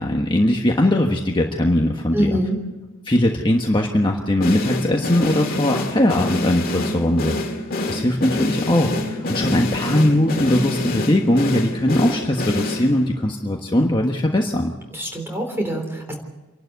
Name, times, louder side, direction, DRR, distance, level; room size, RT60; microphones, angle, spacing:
voice 1, 0.0-2.3 3.0-7.4 7.9-14.7, left 1 dB, 20° left, 1 dB, 1.3 m, -20 dB
voice 2, 2.1-2.6 14.9-16.1, equal, 10° right, 2 dB, 3.6 m, -24 dB
sound 1, 4.4-13.2, left 1 dB, 40° left, 2.0 m, -26 dB
28.0 x 12.0 x 8.2 m, 1.2 s
head